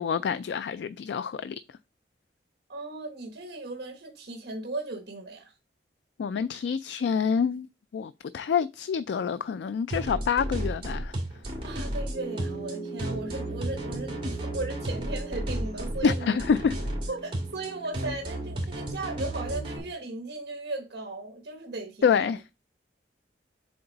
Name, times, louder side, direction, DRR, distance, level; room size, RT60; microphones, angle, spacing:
voice 1, 0.0-1.6 6.2-7.7 7.9-11.1 16.0-16.7 22.0-22.4, left 6 dB, 75° left, 0.3 m, -27 dB
voice 2, 2.7-5.5 11.6-16.4 17.1-22.1, right 2 dB, 65° right, 1.1 m, -36 dB
sound 1, 9.9-19.8, right 1 dB, 30° right, 2.4 m, -33 dB
sound 2, 12.1-19.9, right 3 dB, 10° right, 1.7 m, -42 dB
7.8 x 3.4 x 3.9 m
head